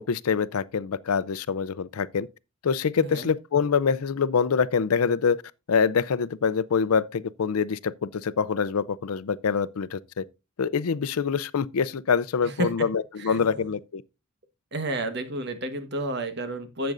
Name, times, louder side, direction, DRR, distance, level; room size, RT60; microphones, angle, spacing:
voice 1, 0.0-2.3 2.6-5.4 5.7-10.2 10.6-14.0, left 6 dB, 85° left, 0.5 m, -25 dB
voice 2, 3.0-3.3 12.4-12.9 13.2-13.6 14.7-16.9, right 1 dB, 50° right, 1.3 m, -31 dB
12.0 x 7.8 x 2.6 m
head